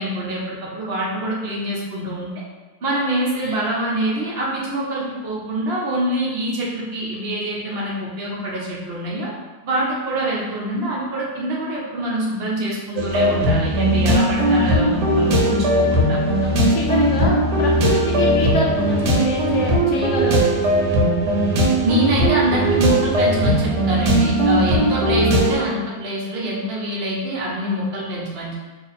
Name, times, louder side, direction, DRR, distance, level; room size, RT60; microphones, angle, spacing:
voice 1, 0.0-2.3 2.8-9.3 9.6-16.2 21.8-28.6, right 1 dB, 60° right, -4 dB, 0.6 m, -25 dB
sound 1, 13.0-25.5, right 1 dB, 90° right, 1.3 m, -18 dB
voice 2, 16.4-20.4, left 2 dB, 80° left, -2 dB, 0.6 m, -26 dB
2.8 x 2.5 x 4.0 m, 1.2 s
omnidirectional pair, 1.8 m